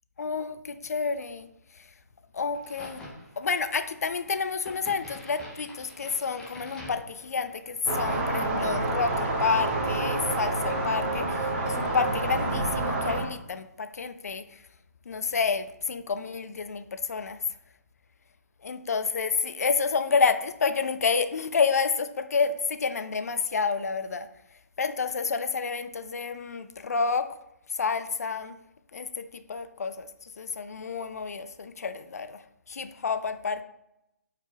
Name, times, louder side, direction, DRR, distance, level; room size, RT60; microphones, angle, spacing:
voice 1, 0.2-1.5 1.8-1.9 2.3-3.0 3.4-14.6 15.1-17.4 18.6-24.3 24.8-27.3 27.7-28.6 28.9-32.4 32.7-33.6, left 5 dB, 60° left, 10 dB, 0.6 m, -29 dB
Crack, 2.5-11.1, left 1 dB, 10° left, 1.1 m, -48 dB
sound 1, 7.9-13.2, right 2 dB, 35° right, 1.6 m, -28 dB
8.1 x 4.9 x 2.9 m, 0.83 s
figure-of-eight pair, 145°, 9 cm